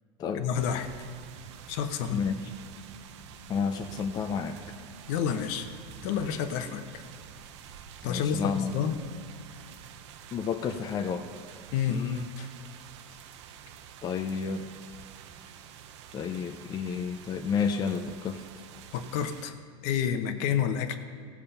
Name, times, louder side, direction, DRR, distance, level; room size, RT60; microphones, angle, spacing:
voice 1, 0.3-0.9 1.7-2.3 5.1-5.7 6.0-7.0 8.0-8.9 11.7-12.0 12.4-12.5 18.9-19.5 19.8-21.0, left 8 dB, 60° left, 9 dB, 1.0 m, -29 dB
sound 1, 0.5-19.5, right 8 dB, 80° right, 0.8 m, -48 dB
voice 2, 2.1-2.4 3.5-4.6 8.0-8.8 10.3-11.3 11.9-12.2 14.0-14.7 16.1-18.4, left 6 dB, 25° left, 5 dB, 0.6 m, -31 dB
16.5 x 7.3 x 5.6 m, 2.3 s
supercardioid pair, 140°, 14 cm